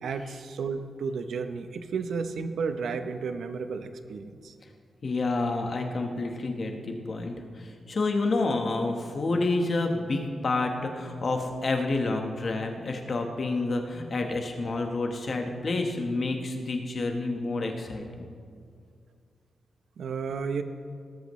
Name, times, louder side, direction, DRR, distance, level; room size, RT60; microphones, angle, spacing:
voice 1, 0.0-4.5 20.0-20.6, right 5 dB, 85° right, 8 dB, 0.8 m, -32 dB
voice 2, 5.0-18.3, left 3 dB, 40° left, 3 dB, 1.2 m, -29 dB
18.5 x 13.5 x 3.2 m, 2.2 s
wide cardioid pair, 170°, 0 cm